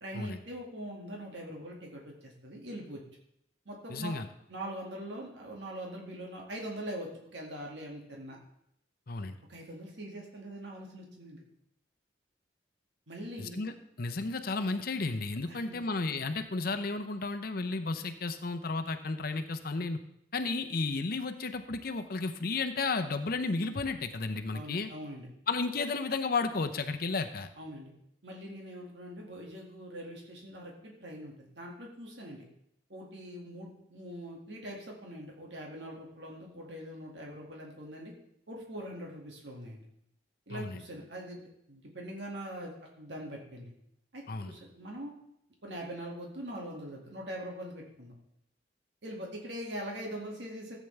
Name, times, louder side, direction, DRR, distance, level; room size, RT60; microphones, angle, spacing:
voice 1, 0.0-3.0 3.7-4.1 4.5-8.4 9.5-11.4 13.1-13.6 15.5-15.8 24.5-25.3 27.6-27.9 28.2-32.4 32.9-38.1 38.5-39.9 40.5-43.7 44.1-45.1 45.6-48.1 49.0-50.8, right 1 dB, 70° right, -1 dB, 2.1 m, -42 dB
voice 2, 3.9-4.3 9.1-9.4 13.4-20.0 20.3-24.9 25.5-27.5 40.5-40.8 44.3-44.5, left 3 dB, 55° left, 7 dB, 0.7 m, -33 dB
14.0 x 8.4 x 3.3 m, 0.76 s
head